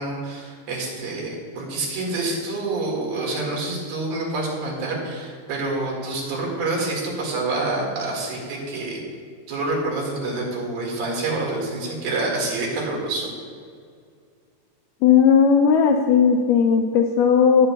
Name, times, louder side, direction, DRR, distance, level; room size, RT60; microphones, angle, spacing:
voice 1, 0.0-9.0 9.5-13.3, right 2 dB, 75° right, -3 dB, 3.7 m, -27 dB
voice 2, 15.0-17.7, left 6 dB, 85° left, 4 dB, 1.9 m, -16 dB
19.0 x 7.6 x 2.3 m, 2.2 s
omnidirectional pair, 4.3 m